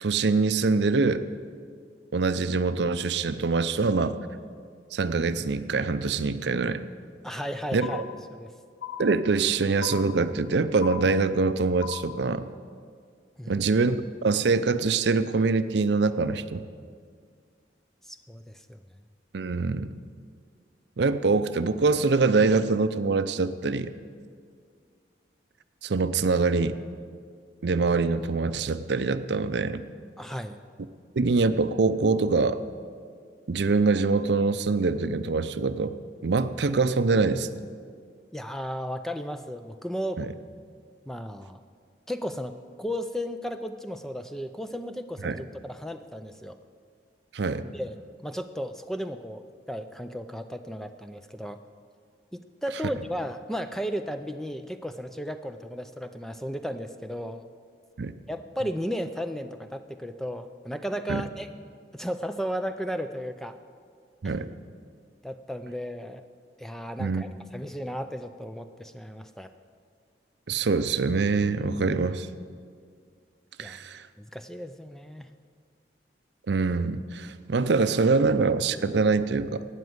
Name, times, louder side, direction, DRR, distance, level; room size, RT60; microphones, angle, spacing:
voice 1, 0.0-1.2 2.1-4.2 4.9-6.8 7.7-8.0 9.0-12.4 13.5-16.6 19.3-19.9 21.0-23.9 25.8-26.8 27.6-29.8 31.1-32.6 33.5-37.5 40.2-40.3 45.2-45.4 47.3-47.6 58.0-58.1 61.1-61.2 64.2-64.5 67.0-67.2 70.5-72.3 73.6-74.0 76.5-79.7, right 4 dB, 75° right, 12 dB, 0.5 m, -24 dB
voice 2, 7.2-8.5 13.4-13.7 18.0-18.8 30.2-30.6 38.3-40.2 41.1-41.6 42.1-46.6 47.7-48.0 48.2-51.6 52.3-57.4 58.3-61.5 61.9-63.5 64.2-64.4 65.2-66.2 66.6-69.5 73.6-73.8 74.2-75.3, equal, ahead, 8 dB, 0.4 m, -34 dB
sound 1, 7.8-8.5 8.8-9.5 9.8-10.5 10.8-11.5 11.8-12.5, left 10 dB, 85° left, 0.5 m, -39 dB
12.5 x 9.2 x 7.9 m, 2.1 s
head